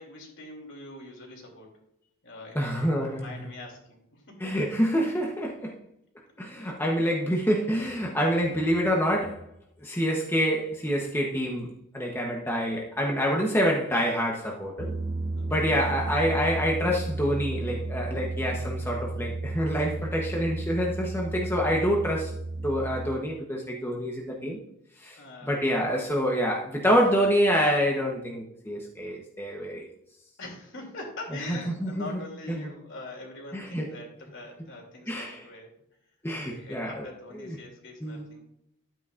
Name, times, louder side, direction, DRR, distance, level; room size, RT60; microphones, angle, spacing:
voice 1, 0.0-1.7 2.2-4.4 6.6-6.7 15.4-15.7 25.2-25.5 30.4-35.7 36.4-38.4, left 2 dB, 55° left, 1 dB, 2.9 m, -43 dB
voice 2, 2.5-3.4 4.4-5.7 6.4-9.4 9.8-14.9 15.5-22.3 22.6-24.6 25.0-29.8 31.5-32.1 32.6-32.7 33.5-33.9 35.1-35.4 36.2-37.0 37.4-37.6 38.0-38.3, equal, 10° left, -1 dB, 1.0 m, -27 dB
sound 1, 14.8-23.2, right 2 dB, 50° right, 1.0 m, -33 dB
12.0 x 8.9 x 2.5 m, 0.77 s
head